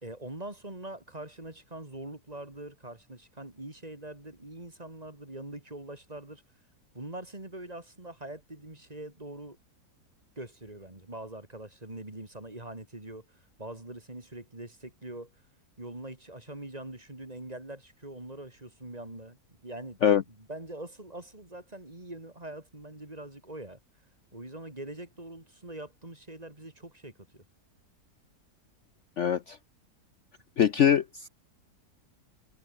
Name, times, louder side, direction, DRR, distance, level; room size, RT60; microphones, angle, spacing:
voice 1, 0.0-6.4 6.9-9.6 10.4-13.3 13.6-15.3 15.8-20.0 20.3-23.8 24.3-27.4, right 1 dB, 25° right, 3.4 m, -43 dB
voice 2, 29.2-29.6 30.6-31.3, left 8 dB, 55° left, 1.0 m, -23 dB
omnidirectional pair, 1.7 m